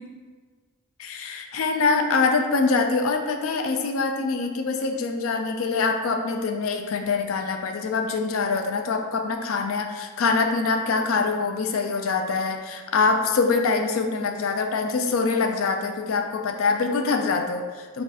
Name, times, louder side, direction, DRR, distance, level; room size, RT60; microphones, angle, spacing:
voice 1, 1.0-18.0, left 4 dB, 65° left, 5 dB, 0.4 m, -24 dB
4.6 x 2.5 x 4.1 m, 1.5 s
head